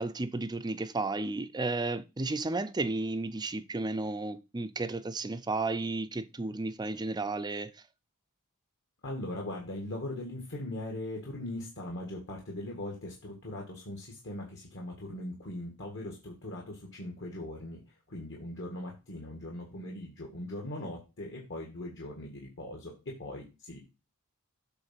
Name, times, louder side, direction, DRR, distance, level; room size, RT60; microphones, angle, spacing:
voice 1, 0.0-7.7, right 3 dB, 20° right, 0.5 m, -33 dB
voice 2, 9.0-17.8 18.1-23.8, left 1 dB, 55° left, 1.9 m, -40 dB
8.0 x 3.8 x 5.8 m
head